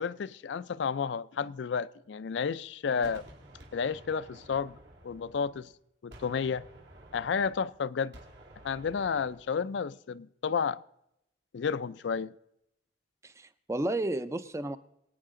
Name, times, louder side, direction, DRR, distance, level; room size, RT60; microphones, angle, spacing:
voice 1, 0.0-3.2 3.7-4.8 5.0-5.7 6.0-6.7 7.1-8.2 8.6-10.8 11.5-12.3, left 6 dB, 75° left, 0.4 m, -31 dB
Gunshot gunfire, 3.0-5.7 6.1-9.7, right 1 dB, 70° right, 2.4 m, -53 dB
voice 2, 13.2-14.8, right 1 dB, 15° right, 0.4 m, -33 dB
24.5 x 9.1 x 3.7 m
head